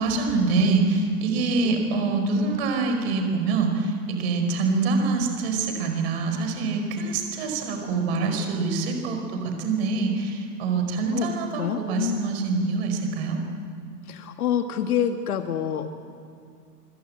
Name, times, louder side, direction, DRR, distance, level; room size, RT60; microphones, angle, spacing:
voice 1, 0.0-13.4, right 3 dB, 40° right, 4 dB, 4.9 m, -25 dB
voice 2, 11.5-12.3 14.1-15.9, left 9 dB, 60° left, 6 dB, 1.7 m, -27 dB
24.0 x 22.5 x 8.8 m, 2.3 s
hypercardioid pair, 160°, 49 cm